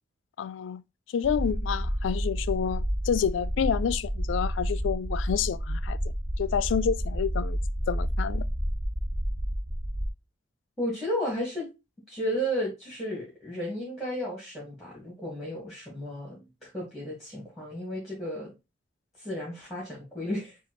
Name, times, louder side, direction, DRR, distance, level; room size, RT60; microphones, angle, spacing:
voice 1, 0.4-0.8 1.1-6.0 6.4-7.6 7.9-8.4, left 7 dB, 85° left, 0.3 m, -29 dB
sound 1, 1.2-10.1, equal, 30° right, 0.5 m, -30 dB
voice 2, 10.8-11.7 12.1-18.5 19.2-20.6, equal, ahead, 1.5 m, -33 dB
7.0 x 2.4 x 2.9 m
head